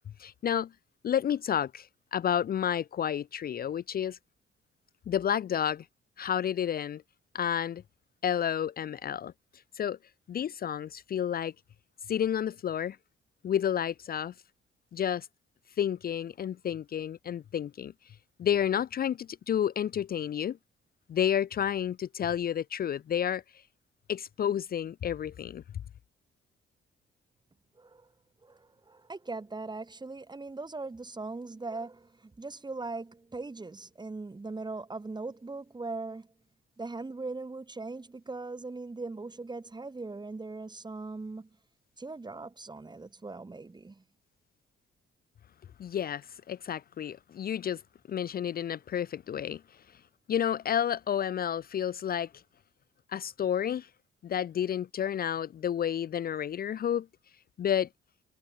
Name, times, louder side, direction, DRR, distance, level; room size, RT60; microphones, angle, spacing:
voice 1, 0.2-0.7 1.0-4.2 5.1-5.9 6.2-7.0 7.3-7.8 8.2-9.3 9.7-10.0 10.3-11.5 12.1-13.0 13.4-14.3 14.9-15.3 15.8-20.6 21.1-23.4 24.1-25.6 45.8-47.8 48.1-49.6 50.3-52.3 53.1-53.9 54.2-57.1 57.6-57.9, left 9 dB, 50° left, 0.7 m, -30 dB
voice 2, 27.8-28.1 28.4-36.3 36.8-41.5 42.0-44.0, right 3 dB, 20° right, 4.6 m, -40 dB
cardioid pair, 90°, 20 cm